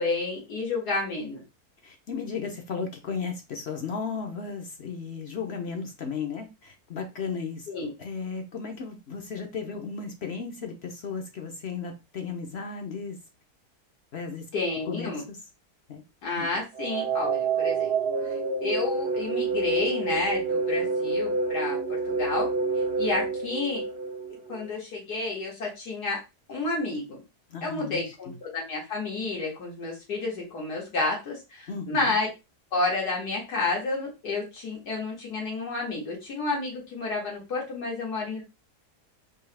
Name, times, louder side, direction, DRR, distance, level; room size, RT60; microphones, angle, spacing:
voice 1, 0.0-1.4 7.7-7.9 14.5-15.2 16.2-17.9 18.6-22.5 23.0-23.8 24.5-26.2 26.5-27.2 27.6-32.3 32.7-38.4, left 3 dB, 90° left, 2.5 m, -30 dB
voice 2, 1.8-13.2 14.1-14.4 14.9-15.4 15.9-16.0 16.4-16.5 27.5-28.3 31.7-32.1, left 5 dB, 50° left, 0.9 m, -35 dB
sound 1, 16.7-24.7, right 4 dB, 50° right, 0.8 m, -28 dB
4.6 x 2.9 x 3.3 m
omnidirectional pair, 1.7 m